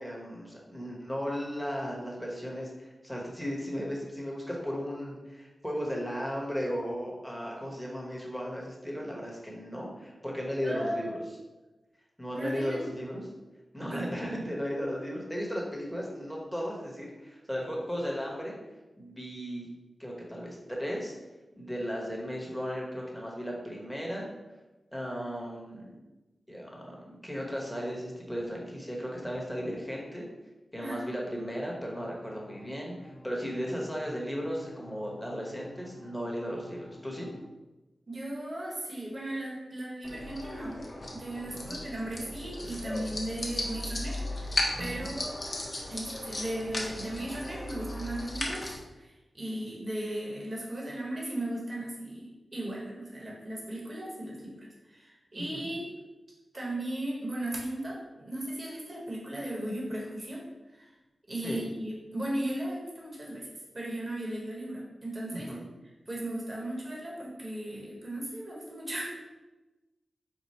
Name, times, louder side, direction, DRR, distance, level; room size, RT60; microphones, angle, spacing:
voice 1, 0.0-11.1 12.2-13.3 13.7-18.5 19.0-19.7 20.0-21.1 21.5-24.3 24.9-26.0 26.5-30.3 30.7-37.3 41.5-41.7 44.8-45.1 55.4-55.7 61.4-61.6 65.3-65.6, equal, ahead, -3 dB, 1.2 m, -36 dB
voice 2, 10.6-11.2 12.3-13.0 13.9-14.4 30.8-31.0 38.1-40.8 41.1-45.4 45.9-55.9 56.5-60.9 61.3-63.5 63.7-65.5 66.1-69.0, right 1 dB, 45° right, -4 dB, 1.3 m, -36 dB
sound 1, 32.0-37.4, left 2 dB, 90° left, 0.9 m, -52 dB
sound 2, 40.0-48.8, left 1 dB, 50° left, 0.9 m, -36 dB
4.7 x 2.3 x 4.2 m, 1.1 s
cardioid pair, 65°, 0 cm